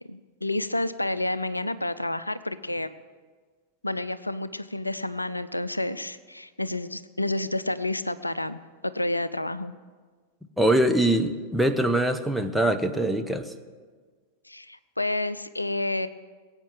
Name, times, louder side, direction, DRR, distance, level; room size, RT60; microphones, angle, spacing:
voice 1, 0.1-3.0 3.8-9.7 14.5-16.1, left 1 dB, 85° left, 15 dB, 0.5 m, -30 dB
voice 2, 10.6-13.5, right 1 dB, ahead, 5 dB, 0.9 m, -23 dB
21.0 x 8.9 x 6.4 m, 1.5 s
figure-of-eight pair, 90°, 0 cm